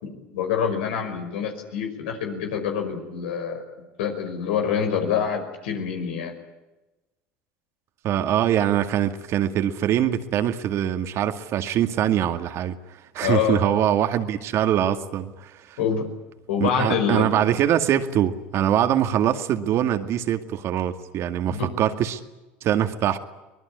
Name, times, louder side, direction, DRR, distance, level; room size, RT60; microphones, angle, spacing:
voice 1, 0.0-3.6 4.0-6.3 13.2-13.6 15.8-16.1 16.5-17.2 21.5-21.7, left 7 dB, 85° left, 5 dB, 5.5 m, -26 dB
voice 2, 8.0-12.8 13.1-15.8 16.6-22.2 22.6-23.2, right 10 dB, 55° right, 8 dB, 2.2 m, -23 dB
24.5 x 20.0 x 9.8 m, 1.1 s
supercardioid pair, 90°, 6 cm